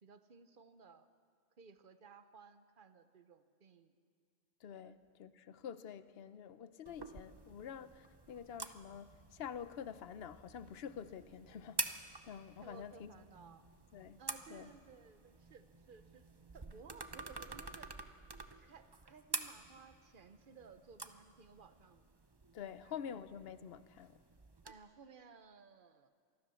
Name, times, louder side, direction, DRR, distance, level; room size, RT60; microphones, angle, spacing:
voice 1, 0.0-1.1 1.6-3.9 4.8-4.9 12.6-13.7 14.2-16.2 16.5-18.2 18.6-22.0 22.8-23.2 24.6-26.1, right 5 dB, 45° right, 1.0 m, -58 dB
voice 2, 4.6-13.1 13.9-14.2 14.5-14.7 22.5-24.2, left 8 dB, 55° left, 0.9 m, -48 dB
sound 1, 6.9-24.7, right 3 dB, 25° right, 0.6 m, -48 dB
24.5 x 16.0 x 7.0 m
omnidirectional pair, 1.4 m